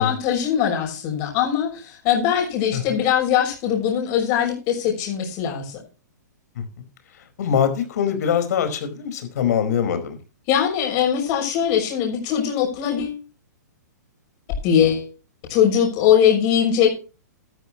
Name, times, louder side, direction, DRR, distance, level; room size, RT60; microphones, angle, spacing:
voice 1, 0.0-5.7 10.5-13.2 14.6-15.1 15.5-16.9, left 9 dB, 40° left, 1 dB, 6.4 m, -21 dB
voice 2, 7.4-10.2, left 8 dB, 65° left, 8 dB, 4.8 m, -23 dB
14.0 x 13.0 x 3.0 m, 0.34 s
hypercardioid pair, 135°, 10 cm